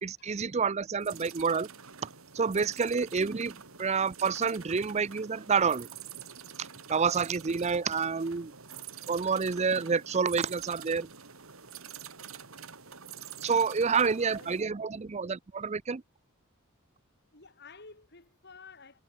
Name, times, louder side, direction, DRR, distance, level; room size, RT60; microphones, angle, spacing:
voice 1, 0.0-1.7 2.3-5.9 6.6-8.5 9.1-11.1 13.4-16.0, right 5 dB, 30° right, 0.5 m, -28 dB
sound 1, 1.0-14.6, right 7 dB, 75° right, 3.6 m, -47 dB
voice 2, 13.4-14.0 14.4-14.6 17.3-19.0, left 4 dB, 50° left, 4.7 m, -53 dB
head